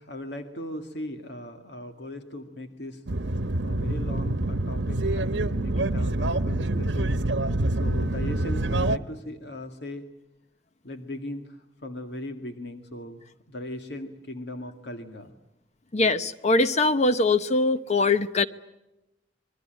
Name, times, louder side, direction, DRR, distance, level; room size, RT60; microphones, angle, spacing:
voice 1, 0.0-3.0 3.6-7.1 7.7-10.0 10.8-15.3, left 1 dB, 65° left, 1.9 m, -38 dB
sound 1, 3.1-9.0, right 2 dB, 75° right, 1.1 m, -26 dB
voice 2, 15.9-18.4, left 3 dB, 40° left, 0.9 m, -22 dB
27.0 x 22.5 x 9.0 m
head